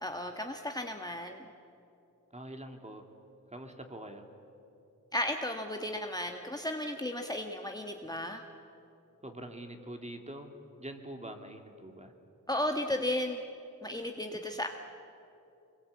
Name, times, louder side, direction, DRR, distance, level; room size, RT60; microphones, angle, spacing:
voice 1, 0.0-1.4 5.1-8.4 12.5-13.4 13.8-14.7, left 1 dB, 10° left, 3 dB, 1.5 m, -34 dB
voice 2, 2.3-3.0 3.5-4.3 9.2-10.5 10.8-12.1, right 1 dB, 20° right, 4 dB, 2.6 m, -44 dB
24.5 x 21.5 x 8.5 m, 2.7 s
cardioid pair, 70°, 33 cm